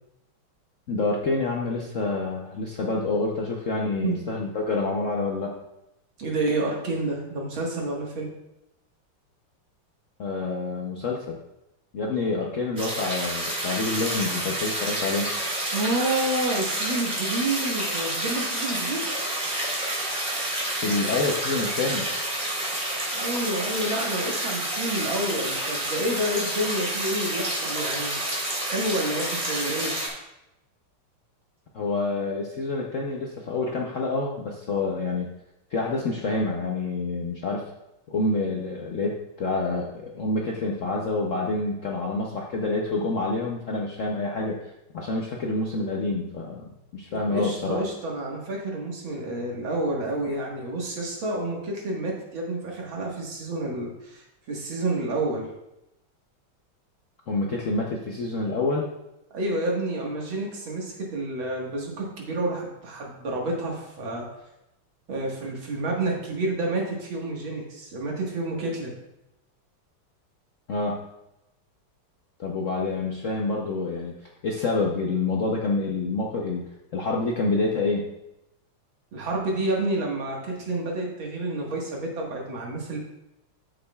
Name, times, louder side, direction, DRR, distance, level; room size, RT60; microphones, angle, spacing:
voice 1, 0.9-5.6 10.2-11.4 11.9-15.3 20.8-22.1 31.7-35.3 35.7-37.7 38.1-47.8 57.3-58.9 70.7-71.0 72.4-74.1 74.4-76.6 76.9-78.1, left 3 dB, 70° left, -1 dB, 0.7 m, -27 dB
voice 2, 6.2-8.3 15.7-19.1 23.1-29.9 47.1-55.5 59.3-64.3 65.1-68.9 79.1-83.0, right 2 dB, 65° right, -2 dB, 2.3 m, -29 dB
sound 1, 12.8-30.1, right 1 dB, 25° right, 2.2 m, -29 dB
12.5 x 6.3 x 2.3 m, 0.88 s
omnidirectional pair, 2.4 m